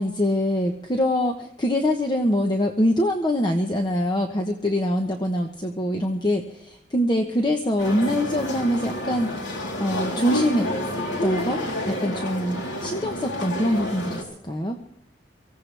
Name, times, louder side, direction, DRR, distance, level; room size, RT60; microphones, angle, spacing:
voice 1, 0.0-10.7 11.2-14.8, left 1 dB, 25° left, 3 dB, 1.0 m, -24 dB
sound 1, 7.8-14.2, equal, 90° left, 3.4 m, -29 dB
24.0 x 16.0 x 3.4 m, 0.78 s
head